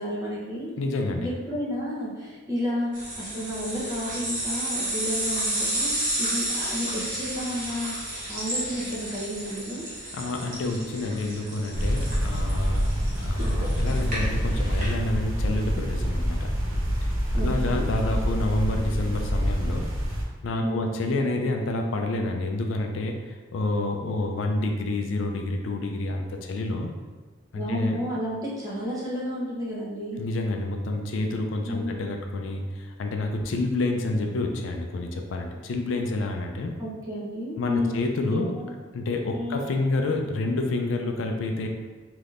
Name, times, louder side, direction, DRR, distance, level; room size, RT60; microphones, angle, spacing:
voice 1, 0.0-0.7 1.2-5.9 6.2-7.9 8.3-9.8 13.4-13.8 17.3-17.8 20.6-21.0 27.5-30.2 31.7-32.1 36.8-38.7 39.3-39.6, equal, 20° right, -7 dB, 0.8 m, -32 dB
voice 2, 0.8-1.3 10.1-12.9 13.2-16.5 17.4-19.8 20.4-26.9 27.5-28.0 30.2-36.7 37.6-38.5 38.9-41.7, left 2 dB, 70° left, 3 dB, 0.4 m, -28 dB
sound 1, 2.9-14.9, right 1 dB, 40° right, 1.1 m, -32 dB
sound 2, 11.7-20.2, equal, 80° right, 0.8 m, -26 dB
3.4 x 2.8 x 2.4 m, 1.3 s
head